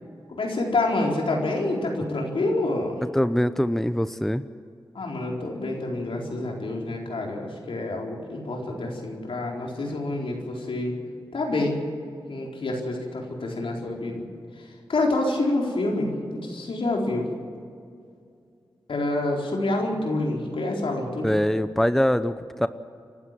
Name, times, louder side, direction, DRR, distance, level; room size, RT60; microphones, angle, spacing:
voice 1, 0.3-3.0 4.9-11.0 11.3-11.8 12.3-14.2 14.6-17.3 18.9-21.3, left 2 dB, 75° left, 0 dB, 4.4 m, -27 dB
voice 2, 3.1-4.4 21.2-22.7, equal, 5° left, 12 dB, 0.8 m, -23 dB
29.0 x 12.5 x 7.6 m, 2.4 s
cardioid pair, 45°, 9 cm